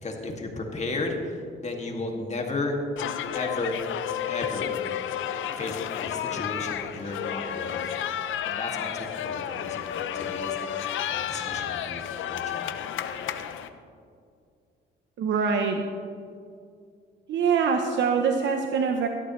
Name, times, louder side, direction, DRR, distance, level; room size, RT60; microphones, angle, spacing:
voice 1, 0.0-1.2 1.6-2.8 3.3-3.8 4.3-4.8 5.6-8.1 8.4-10.6 11.1-12.8, left 2 dB, 35° left, 1 dB, 2.3 m, -34 dB
sound 1, 3.0-13.7, left 10 dB, 80° left, 0.8 m, -31 dB
voice 2, 15.2-15.8 17.3-19.1, right 6 dB, 65° right, 4 dB, 0.9 m, -24 dB
17.0 x 12.5 x 3.2 m, 2.3 s
cardioid pair, 90°, 20 cm